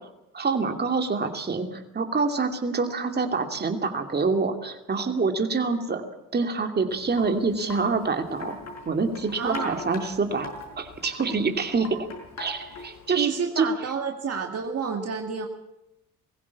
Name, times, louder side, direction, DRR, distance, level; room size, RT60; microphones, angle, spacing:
voice 1, 0.3-6.0 6.3-8.6 8.9-10.5 10.8-12.0 12.4-13.7, right 4 dB, 35° right, 5 dB, 2.7 m, -26 dB
Wind chime, 6.9-13.1, left 2 dB, 60° left, 5.8 m, -41 dB
voice 2, 9.4-9.8 13.1-15.5, right 6 dB, 55° right, 3 dB, 2.2 m, -29 dB
20.5 x 16.0 x 8.5 m, 0.90 s
cardioid pair, 90°, 30 cm